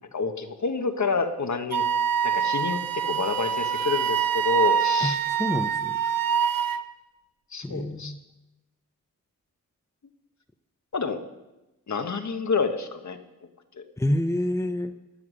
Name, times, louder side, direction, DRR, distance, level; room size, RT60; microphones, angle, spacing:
voice 1, 0.1-1.8 2.2-5.2 7.5-8.1 10.9-11.2 11.9-13.2 13.7-13.8, left 4 dB, 50° left, 7 dB, 1.3 m, -28 dB
Wind instrument woodwind instrument, 1.7-6.8, right 8 dB, 70° right, 0.7 m, -25 dB
voice 2, 5.4-6.0 7.6-8.2 14.0-14.9, left 1 dB, 10° left, 8 dB, 0.8 m, -27 dB
13.5 x 9.3 x 6.4 m, 1.0 s
cardioid pair, 55°, 35 cm